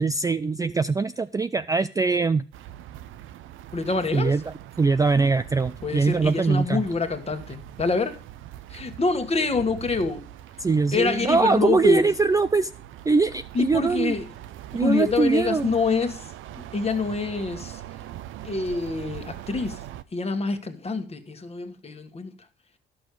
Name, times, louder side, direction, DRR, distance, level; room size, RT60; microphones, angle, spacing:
voice 1, 0.0-2.5 4.1-6.8 10.6-12.7 13.1-14.1 14.7-15.7, right 4 dB, 15° right, 0.3 m, -22 dB
sound 1, 2.5-20.0, right 13 dB, 80° right, 0.6 m, -42 dB
voice 2, 3.7-4.4 5.8-8.2 8.7-10.3 10.9-12.1 13.5-14.2 14.7-16.2 16.5-17.8 18.4-19.8 20.1-22.3, left 4 dB, 30° left, 1.4 m, -26 dB
11.5 x 6.2 x 4.9 m
cardioid pair, 90°, 20 cm